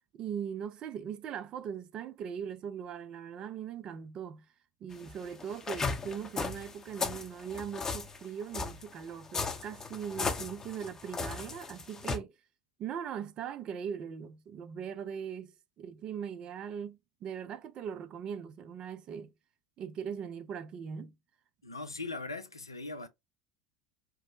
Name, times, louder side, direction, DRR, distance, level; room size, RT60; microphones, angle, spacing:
voice 1, 0.1-4.5 4.8-12.4 12.8-15.5 15.8-19.3 19.8-21.1, right 8 dB, 40° right, 0.5 m, -40 dB
sound 1, 4.9-12.2, left 4 dB, 25° left, 0.7 m, -36 dB
voice 2, 21.6-23.1, left 3 dB, 90° left, 0.4 m, -40 dB
4.6 x 2.1 x 2.5 m
figure-of-eight pair, 75°, 2 cm